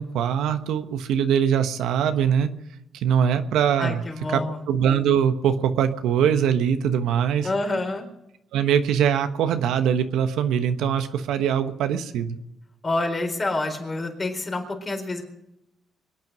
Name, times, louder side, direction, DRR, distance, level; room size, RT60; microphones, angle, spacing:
voice 1, 0.0-2.5 2.9-4.0 4.3-4.4 4.7-7.5 8.5-12.4, right 8 dB, 85° right, 8 dB, 1.2 m, -22 dB
voice 2, 3.8-4.6 7.4-8.1 12.8-15.2, left 2 dB, 30° left, 3 dB, 4.2 m, -27 dB
24.5 x 9.3 x 6.1 m, 0.85 s
cardioid pair, 90°, 0 cm